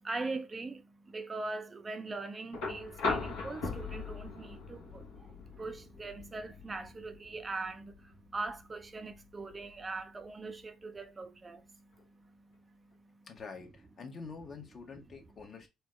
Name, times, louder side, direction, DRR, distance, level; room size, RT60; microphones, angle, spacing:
voice 1, 0.0-13.3, right 3 dB, 30° right, 0.5 m, -42 dB
sound 1, 2.5-10.6 12.0-12.1, left 4 dB, 70° left, 1.1 m, -40 dB
voice 2, 13.3-15.7, left 4 dB, 45° left, 1.0 m, -46 dB
4.5 x 2.0 x 3.1 m
hypercardioid pair, 50°, 0 cm